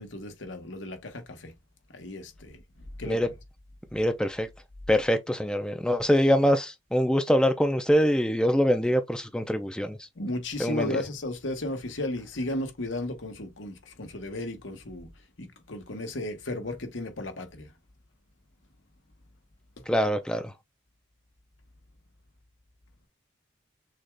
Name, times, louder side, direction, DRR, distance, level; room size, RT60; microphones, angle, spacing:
voice 1, 0.0-1.5 1.9-2.6 3.0-3.3 10.2-15.1 15.4-17.7, left 1 dB, 90° left, 1.2 m, -34 dB
voice 2, 3.9-4.5 4.9-10.0 10.6-11.0 19.9-20.4, equal, 5° left, 0.4 m, -24 dB
6.4 x 2.4 x 3.3 m
head